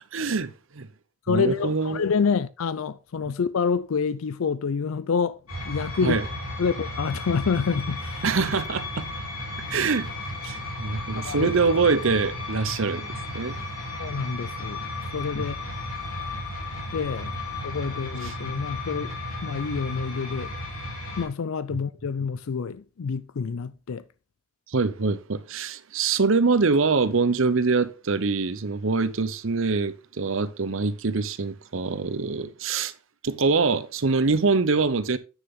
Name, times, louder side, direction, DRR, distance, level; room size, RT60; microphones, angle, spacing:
voice 1, 0.1-0.9 1.3-2.0 3.3-3.4 6.0-6.2 8.2-9.1 9.7-10.1 10.4-13.0 13.3-13.6 18.2-18.3 24.7-32.9 33.2-35.2, right 4 dB, 65° right, 0.8 m, -24 dB
voice 2, 1.3-5.4 5.7-6.2 6.6-8.2 11.2-11.5 14.0-15.6 16.9-17.3 17.6-19.1 19.4-20.5 21.2-24.0, left 5 dB, 75° left, 0.4 m, -27 dB
sound 1, 5.5-21.2, left 1 dB, 90° left, 3.5 m, -34 dB
9.2 x 6.8 x 3.7 m
head